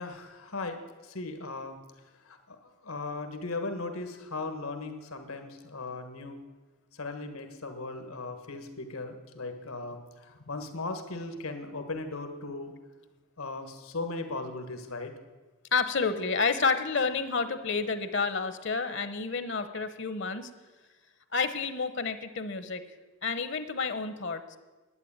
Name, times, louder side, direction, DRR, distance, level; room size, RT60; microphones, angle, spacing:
voice 1, 0.0-1.8 2.2-6.4 7.0-12.7 13.4-15.1, left 3 dB, 85° left, 7 dB, 1.5 m, -38 dB
voice 2, 15.7-20.5 21.3-22.8 23.2-24.6, left 4 dB, 55° left, 11 dB, 0.9 m, -30 dB
11.0 x 9.7 x 8.8 m, 1.2 s
head